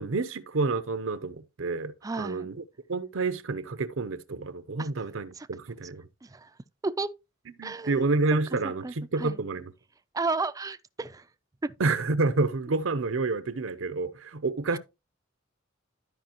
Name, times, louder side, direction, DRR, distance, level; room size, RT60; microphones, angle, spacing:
voice 1, 0.0-2.6 2.9-6.1 7.6-9.7 11.8-14.8, right 3 dB, 75° right, 0.7 m, -29 dB
voice 2, 2.0-2.5 4.8-4.9 5.3-5.5 6.2-6.5 6.8-7.1 7.6-8.1 8.6-9.4 10.1-11.3 11.6-11.7 14.7-14.8, right 3 dB, 15° right, 0.4 m, -33 dB
12.5 x 5.1 x 2.9 m
head